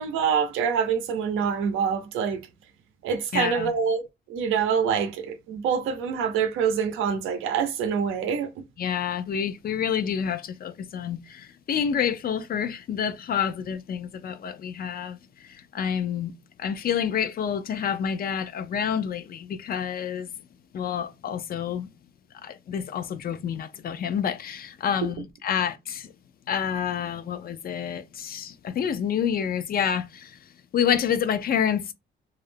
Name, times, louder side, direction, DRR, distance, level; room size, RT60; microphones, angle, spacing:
voice 1, 0.0-2.4 3.0-8.6, right 7 dB, 90° right, 0.6 m, -26 dB
voice 2, 3.3-3.7 8.8-15.2 15.5-16.3 16.6-20.3 20.7-21.9 22.4-26.1 26.5-30.4 30.7-31.9, left 8 dB, 50° left, 0.4 m, -28 dB
2.4 x 2.0 x 3.2 m
cardioid pair, 90°, 20 cm